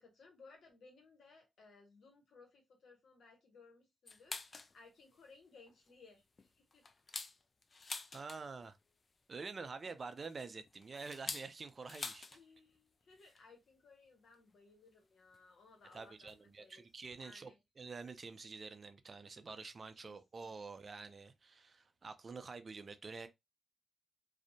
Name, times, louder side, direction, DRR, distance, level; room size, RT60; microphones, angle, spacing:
voice 1, 0.0-6.2 6.6-6.8 12.3-16.8 17.2-17.6 20.0-21.1, left 3 dB, 70° left, 0.9 m, -62 dB
sound 1, 4.1-4.7 5.2-5.3 5.7-5.9 6.4-8.7 9.9-12.4 12.7-12.8 13.1-13.4 14.3-14.4 15.3-15.4 16.3-16.4 16.8-16.9 17.0-17.2, left 3 dB, 45° left, 0.3 m, -47 dB
voice 2, 8.1-8.8 9.3-12.3 15.9-23.3, right 4 dB, 50° right, 0.4 m, -48 dB
2.6 x 2.0 x 2.6 m
supercardioid pair, 50°, 0 cm